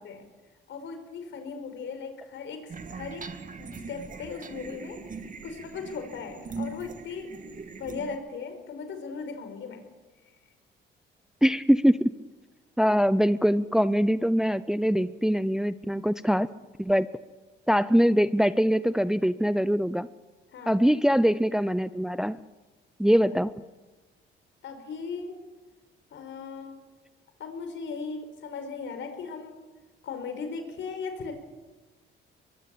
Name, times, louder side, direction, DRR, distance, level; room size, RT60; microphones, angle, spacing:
voice 1, 0.7-3.3 3.6-7.4 7.7-9.8 20.5-20.8 24.6-25.4 26.1-26.8 27.4-29.6 30.0-31.3, left 5 dB, 70° left, 7 dB, 5.2 m, -38 dB
sound 1, 2.7-8.2, right 4 dB, 40° right, 2.2 m, -40 dB
voice 2, 11.4-12.0 12.8-16.5 16.8-17.1 17.7-20.1 20.7-22.4 23.0-23.5, equal, 5° right, 14 dB, 0.7 m, -23 dB
24.0 x 22.0 x 8.6 m, 1.2 s
cardioid pair, 90°, 20 cm